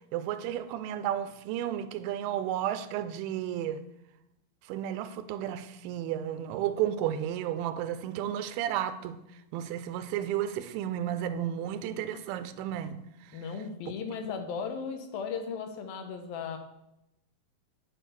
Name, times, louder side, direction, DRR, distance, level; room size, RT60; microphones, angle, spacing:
voice 1, 0.1-3.8 4.7-9.2 9.5-13.0, right 10 dB, 85° right, 2.4 m, -32 dB
voice 2, 13.3-16.6, left 6 dB, 85° left, 2.9 m, -36 dB
10.5 x 4.0 x 6.9 m
omnidirectional pair, 4.1 m